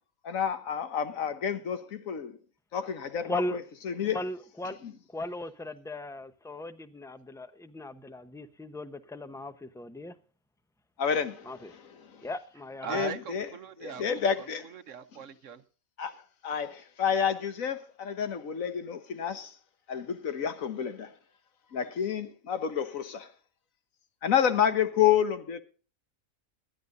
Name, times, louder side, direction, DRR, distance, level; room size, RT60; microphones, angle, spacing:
voice 1, 0.2-2.4 2.7-3.4 3.8-4.2 11.0-11.5 12.9-13.5 13.8-14.7 16.0-16.1 16.4-19.5 19.9-21.1 21.7-23.3 24.2-25.6, left 8 dB, 70° left, 1.5 m, -29 dB
voice 2, 3.2-3.6 4.1-4.8 5.1-10.1 11.4-11.7 12.2-13.1, left 1 dB, 5° left, 0.7 m, -38 dB
voice 3, 12.8-14.0 14.4-15.6, right 8 dB, 65° right, 1.2 m, -40 dB
21.5 x 12.0 x 2.6 m
omnidirectional pair, 1.4 m